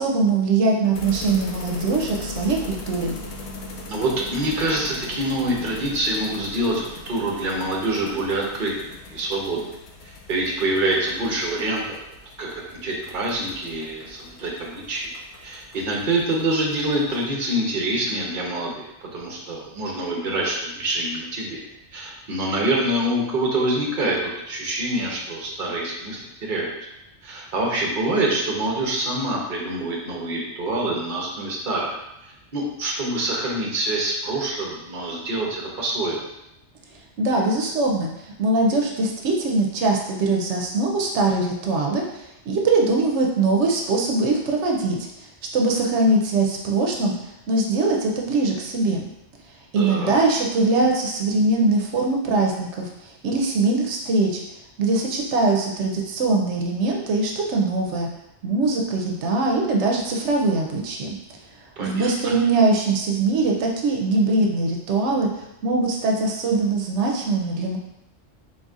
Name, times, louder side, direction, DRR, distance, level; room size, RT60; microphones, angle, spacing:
voice 1, 0.0-3.1 37.2-38.1 38.4-45.3 45.5-47.1 47.5-49.0 49.7-54.4 54.8-58.1 58.4-61.1 61.8-65.3 65.6-67.8, right 3 dB, 90° right, 0 dB, 0.9 m, -22 dB
sound 1, 0.9-17.3, left 3 dB, 75° left, 0.9 m, -40 dB
voice 2, 3.9-9.7 10.0-12.0 12.4-15.1 15.4-18.9 19.1-21.6 21.9-26.7 27.2-32.0 32.5-36.2 49.8-50.1 61.8-62.4, right 1 dB, 50° right, -2 dB, 1.0 m, -26 dB
4.0 x 3.9 x 2.4 m, 0.87 s
omnidirectional pair, 1.2 m